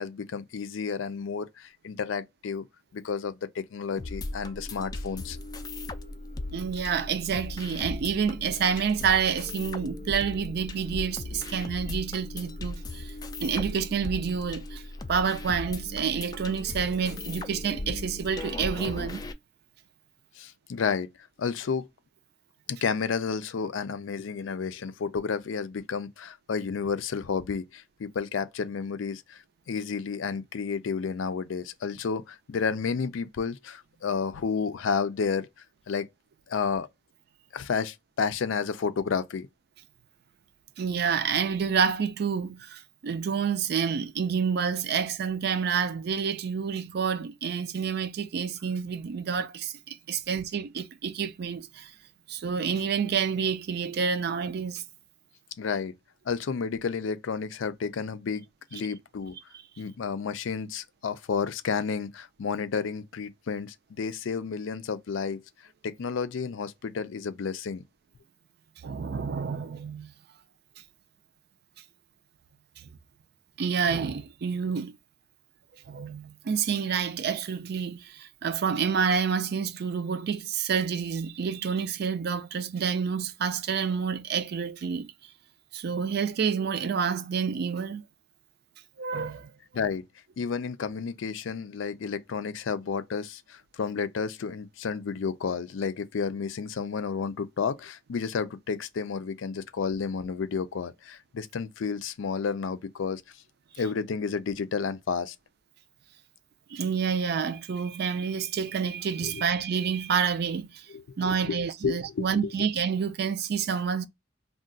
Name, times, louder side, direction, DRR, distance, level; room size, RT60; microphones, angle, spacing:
voice 1, 0.0-2.7 2.9-5.4 20.4-21.1 21.4-21.9 22.7-35.5 35.9-36.1 36.5-36.9 37.5-39.5 55.6-56.0 56.3-59.4 59.8-65.4 65.8-67.8 89.7-90.0 90.4-103.2 103.8-105.4 109.2-109.4 110.9-112.5, left 5 dB, 85° left, 0.4 m, -31 dB
sound 1, 4.0-19.3, left 2 dB, 20° left, 0.3 m, -37 dB
voice 2, 6.5-13.1 13.4-14.8 15.1-19.2 40.8-51.9 52.3-54.8 68.8-70.1 73.6-74.9 75.9-85.1 85.7-88.0 89.0-89.5 106.7-110.9 111.2-114.1, right 6 dB, 55° right, 0.4 m, -28 dB
2.4 x 2.2 x 3.7 m
head